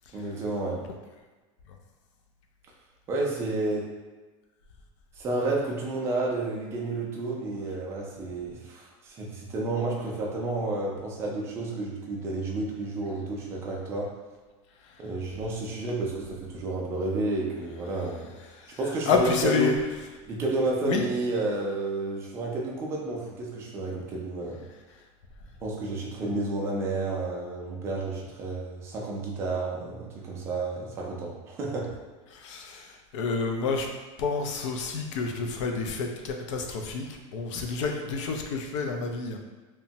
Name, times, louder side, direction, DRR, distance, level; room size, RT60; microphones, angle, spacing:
voice 1, 0.1-0.8 3.1-3.9 5.2-14.1 15.0-18.3 18.8-19.7 20.3-24.6 25.6-31.9 37.5-37.6, right 2 dB, 15° right, -3 dB, 0.3 m, -30 dB
voice 2, 19.1-19.8 20.8-21.0 32.3-33.9 34.2-39.4, left 4 dB, 70° left, 3 dB, 0.4 m, -29 dB
2.9 x 2.1 x 2.7 m, 1.3 s
supercardioid pair, 175°, 16 cm